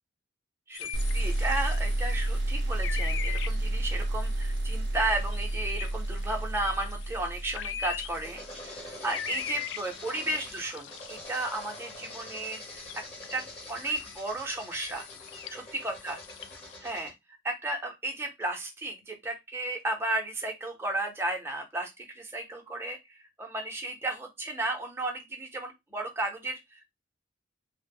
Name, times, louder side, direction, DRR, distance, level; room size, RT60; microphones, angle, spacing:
sound 1, 0.7-16.8, left 9 dB, 70° left, 0.3 m, -42 dB
voice 1, 0.7-12.8 13.3-15.1 15.5-16.2 16.8-26.9, right 2 dB, 15° right, 2 dB, 0.6 m, -34 dB
sound 2, 0.9-8.5, right 1 dB, 60° right, 0.4 m, -30 dB
sound 3, 7.5-17.1, left 1 dB, 30° left, 0.9 m, -45 dB
2.0 x 2.0 x 3.4 m, 0.20 s
head